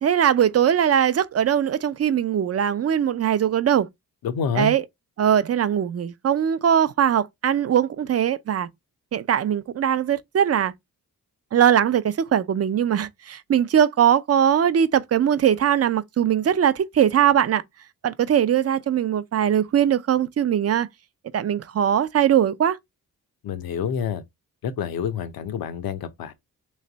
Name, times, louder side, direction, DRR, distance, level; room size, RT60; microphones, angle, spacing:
voice 1, 0.0-3.9 4.6-4.8 5.2-8.7 9.1-10.7 11.5-17.6 18.0-20.9 21.3-22.8, right 9 dB, 45° right, 0.6 m, -20 dB
voice 2, 4.2-4.8 23.4-24.2 24.6-26.3, left 7 dB, 80° left, 0.8 m, -28 dB
3.2 x 3.2 x 3.9 m
cardioid pair, 80°, 35 cm